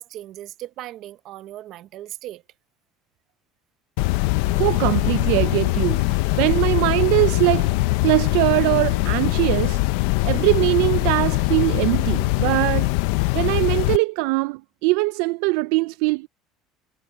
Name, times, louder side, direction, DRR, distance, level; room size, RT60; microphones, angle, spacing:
voice 1, 0.0-2.4, right 14 dB, 45° right, 0.7 m, -37 dB
sound 1, 4.0-14.0, left 22 dB, 75° left, 0.4 m, -22 dB
voice 2, 4.5-9.8 10.2-12.9 13.3-16.3, right 24 dB, 75° right, 0.3 m, -22 dB
cardioid pair, 170°, 0 cm